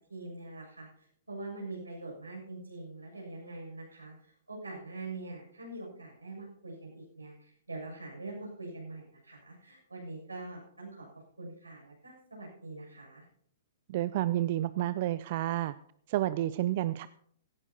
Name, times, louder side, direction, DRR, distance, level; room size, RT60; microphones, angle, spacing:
voice 1, 0.1-11.1 11.4-13.3, right 2 dB, 90° right, -1 dB, 7.0 m, -44 dB
voice 2, 13.9-15.7 16.1-17.1, right 14 dB, 50° right, 15 dB, 0.4 m, -30 dB
17.0 x 15.5 x 2.9 m, 0.65 s
figure-of-eight pair, 115°, 0 cm